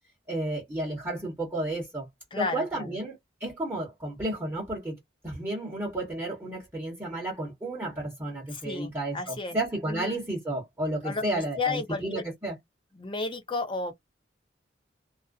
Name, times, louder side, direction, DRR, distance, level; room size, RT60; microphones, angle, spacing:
voice 1, 0.3-2.1 2.3-5.0 5.2-12.6, right 1 dB, 10° right, 1.0 m, -32 dB
voice 2, 2.3-2.9 8.5-9.6 9.9-10.2 11.0-12.2 12.9-13.9, left 3 dB, 30° left, 0.6 m, -33 dB
2.4 x 2.1 x 2.4 m
head